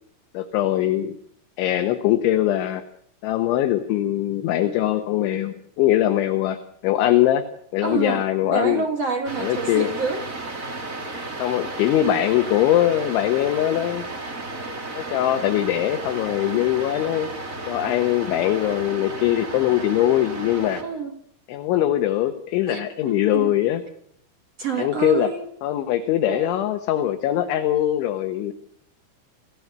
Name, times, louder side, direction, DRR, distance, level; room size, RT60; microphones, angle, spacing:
voice 1, 0.3-1.1 1.6-2.8 3.2-6.6 6.8-7.4 7.7-8.9 9.4-9.9 11.4-14.1 15.0-17.3 17.7-20.8 21.5-23.8 24.8-25.3 25.6-28.5, left 12 dB, 75° left, 3.4 m, -22 dB
voice 2, 7.8-10.3 20.8-21.2 22.7-23.5 24.6-25.4 26.3-26.5, right 5 dB, 70° right, 1.5 m, -28 dB
sound 1, 9.2-20.8, right 2 dB, 30° right, 1.5 m, -33 dB
28.5 x 16.5 x 8.3 m
omnidirectional pair, 5.9 m